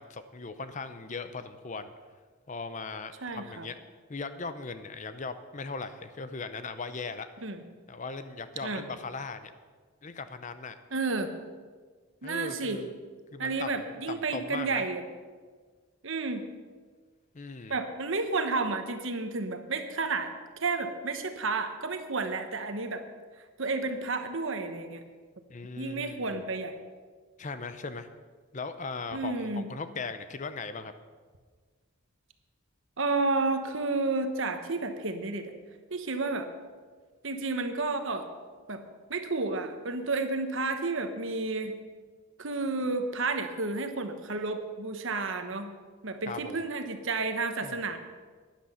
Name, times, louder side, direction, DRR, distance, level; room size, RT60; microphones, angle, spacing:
voice 1, 0.0-1.9 2.5-3.8 4.1-7.3 7.9-9.5 10.0-10.8 12.2-12.9 13.3-14.9 17.3-17.8 25.5-26.4 27.4-28.1 28.5-30.9 46.3-46.6 47.6-47.8, left 4 dB, 35° left, 11 dB, 0.6 m, -39 dB
voice 2, 3.2-3.7 7.4-7.6 8.6-8.8 10.9-11.3 12.2-12.8 13.4-15.0 16.0-16.4 17.7-20.3 20.6-23.0 23.6-25.0 25.8-26.8 29.1-29.7 33.0-35.5 35.9-36.5 37.2-38.3 38.7-38.8 39.1-41.8 42.4-45.7 46.0-48.0, right 3 dB, 60° right, 7 dB, 1.1 m, -31 dB
12.5 x 10.5 x 5.6 m, 1.5 s
head